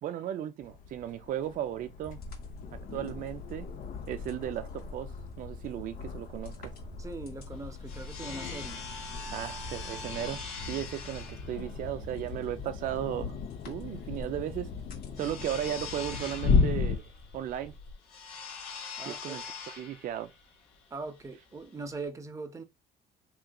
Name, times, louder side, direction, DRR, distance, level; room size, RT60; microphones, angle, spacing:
voice 1, 0.0-2.2 2.7-3.7 4.1-6.7 9.3-13.4 13.7-14.7 15.2-17.8 19.1-20.3, right 11 dB, 55° right, 0.4 m, -36 dB
sound 1, 0.6-17.0, left 4 dB, 55° left, 0.6 m, -36 dB
sound 2, 2.0-17.9, left 3 dB, 70° left, 2.4 m, -45 dB
voice 2, 7.0-8.8 19.0-19.4 20.9-22.6, right 3 dB, 20° right, 0.7 m, -41 dB
sound 3, 7.5-22.1, left 4 dB, 85° left, 1.8 m, -44 dB
3.7 x 3.6 x 2.3 m
cardioid pair, 110°, 17 cm